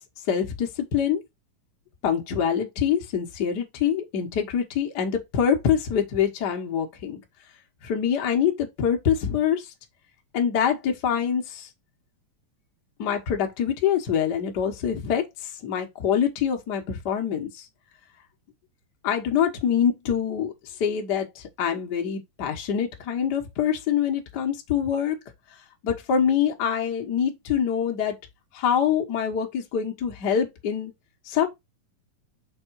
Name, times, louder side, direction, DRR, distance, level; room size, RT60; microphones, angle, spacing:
voice 1, 0.3-1.2 2.0-7.2 7.8-9.7 10.3-11.7 13.0-15.2 15.6-17.6 19.0-20.5 20.8-25.2 25.8-28.1 28.5-30.9 31.3-31.5, left 8 dB, 70° left, 0.9 m, -25 dB
6.1 x 3.7 x 4.6 m
omnidirectional pair, 3.8 m